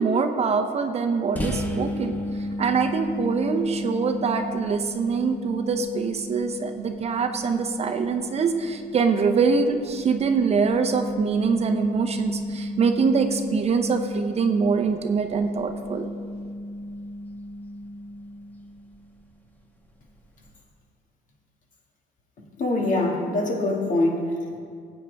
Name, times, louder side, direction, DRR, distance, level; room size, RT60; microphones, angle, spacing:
voice 1, 0.0-2.1 2.6-16.1, right 5 dB, 40° right, 6 dB, 0.7 m, -24 dB
sound 1, 1.4-18.9, equal, 10° left, 1.2 m, -34 dB
voice 2, 22.6-24.6, left 2 dB, 50° left, -1 dB, 2.1 m, -24 dB
15.0 x 8.7 x 3.4 m, 2.2 s
cardioid pair, 110°, 17 cm